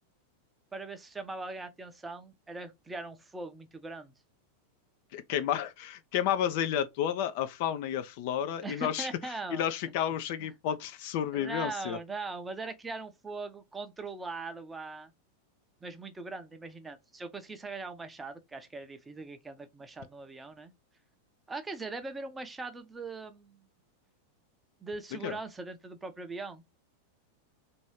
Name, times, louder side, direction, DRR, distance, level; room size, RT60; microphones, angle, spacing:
voice 1, 0.7-4.1 8.6-9.6 11.3-15.1 15.8-20.7 21.5-23.6 24.8-26.6, right 3 dB, 10° right, 0.6 m, -40 dB
voice 2, 5.1-12.0 25.2-25.4, left 10 dB, 50° left, 0.4 m, -31 dB
3.0 x 2.7 x 3.1 m
figure-of-eight pair, 90°, 0 cm